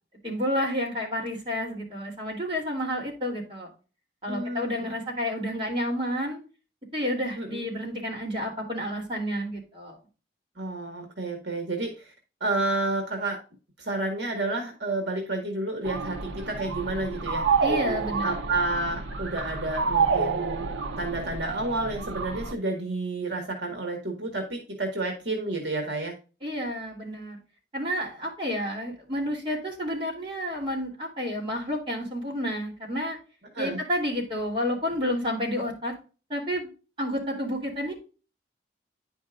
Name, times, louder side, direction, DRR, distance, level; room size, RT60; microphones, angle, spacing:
voice 1, 0.2-3.7 4.2-6.4 6.9-10.0 17.6-18.4 26.4-27.4 27.7-33.2 33.6-35.9 36.3-36.7 37.0-38.0, equal, 30° right, -3 dB, 3.0 m, -30 dB
voice 2, 4.3-5.0 7.4-7.6 10.6-12.1 12.4-13.4 13.8-17.4 18.2-20.6 21.0-26.1 33.5-33.8, right 2 dB, 70° right, 3 dB, 1.7 m, -30 dB
sound 1, 15.8-22.5, right 5 dB, 85° right, 0.7 m, -29 dB
10.0 x 5.3 x 2.5 m, 0.34 s
head